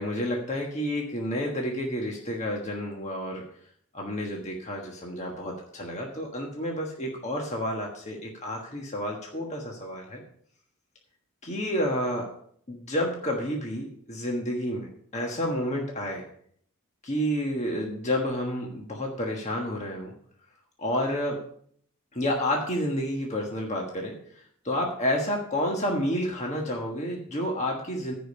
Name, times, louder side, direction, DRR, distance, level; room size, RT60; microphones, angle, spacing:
voice 1, 0.0-3.4 3.9-10.2 11.4-12.2 12.7-16.2 17.0-20.1 20.8-21.4 22.1-28.1, equal, 30° left, 0 dB, 1.4 m, -30 dB
15.0 x 5.1 x 5.4 m, 0.64 s
head